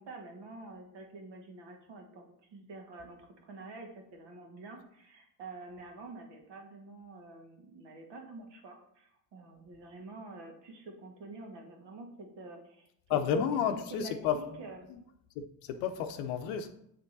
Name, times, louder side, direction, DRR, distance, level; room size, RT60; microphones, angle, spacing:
voice 1, 0.0-2.2 2.5-13.6 13.9-14.9, right 3 dB, 55° right, 1.7 m, -47 dB
voice 2, 13.1-14.4 15.4-16.7, left 8 dB, 75° left, 0.7 m, -31 dB
7.9 x 3.6 x 4.0 m
supercardioid pair, 75°, 48 cm